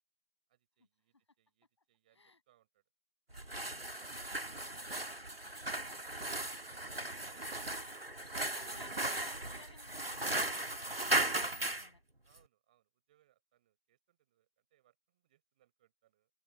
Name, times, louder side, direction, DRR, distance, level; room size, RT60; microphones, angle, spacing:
voice 1, 0.5-2.8 8.4-8.8 12.2-16.3, right 13 dB, 10° right, 7.5 m, -73 dB
sound 1, 3.3-11.9, right 2 dB, 75° right, 1.9 m, -37 dB
voice 2, 3.5-3.9 8.5-12.0, left 3 dB, 30° left, 7.8 m, -58 dB
open air
figure-of-eight pair, 165°, 30 cm